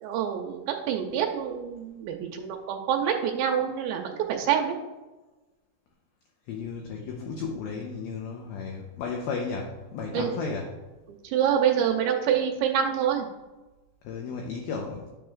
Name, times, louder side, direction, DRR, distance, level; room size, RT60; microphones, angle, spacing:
voice 1, 0.0-4.7 10.1-10.4 11.2-13.3, right 8 dB, 85° right, 2 dB, 2.8 m, -26 dB
voice 2, 6.5-10.7 14.0-15.1, left 5 dB, 80° left, 1 dB, 2.2 m, -34 dB
11.0 x 6.8 x 2.4 m, 1.1 s
omnidirectional pair, 5.2 m